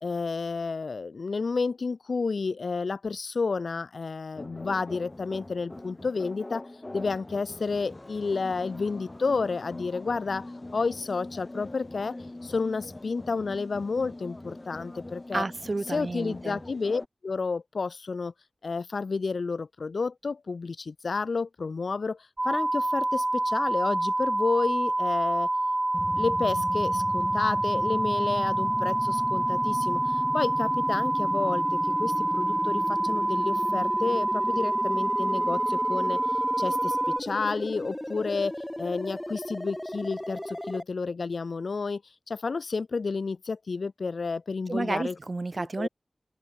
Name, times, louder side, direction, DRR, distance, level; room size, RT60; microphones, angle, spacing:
voice 1, 0.0-6.7 6.9-10.5 10.7-12.2 12.4-15.4 15.9-18.3 18.6-22.2 22.4-25.5 26.2-36.2 36.6-42.0 42.3-45.1 45.6-45.9, left 4 dB, 85° left, 2.8 m, -31 dB
sound 1, 4.4-17.1, left 2 dB, 35° left, 2.7 m, -42 dB
voice 2, 15.3-16.6 44.7-45.9, right 3 dB, 55° right, 1.0 m, -31 dB
sound 2, 22.4-37.2, right 2 dB, 35° right, 2.4 m, -27 dB
sound 3, 25.9-40.8, left 1 dB, 10° left, 1.3 m, -36 dB
wide cardioid pair, 50°, 0 cm